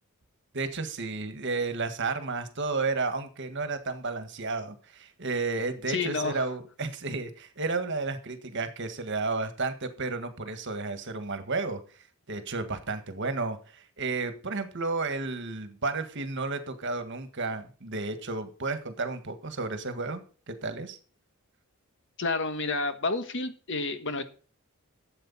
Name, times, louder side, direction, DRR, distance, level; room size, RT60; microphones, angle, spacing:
voice 1, 0.5-11.8 12.3-20.2 20.5-21.0, right 3 dB, 55° right, 9 dB, 1.6 m, -32 dB
voice 2, 5.9-6.4 22.2-24.2, left 3 dB, 55° left, 9 dB, 1.4 m, -30 dB
12.5 x 8.0 x 4.1 m, 0.40 s
head